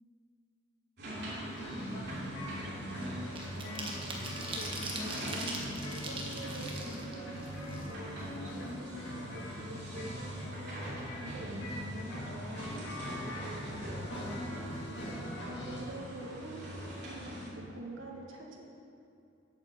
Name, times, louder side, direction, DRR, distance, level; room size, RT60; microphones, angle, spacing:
sound 1, 1.0-17.5, equal, 55° right, 2.8 m, -43 dB
voice 1, 1.0-12.9 13.2-13.8 14.2-14.6 14.9-18.6, right 1 dB, 80° right, -2 dB, 1.7 m, -46 dB
sound 2, 1.3-1.5 1.9-8.3 8.7-8.8 9.1-10.1 10.4-10.5 10.8-11.1, right 2 dB, 25° right, 1.3 m, -42 dB
sound 3, 1.6-15.8, equal, 60° left, 2.2 m, -43 dB
8.8 x 7.9 x 6.8 m, 2.7 s
head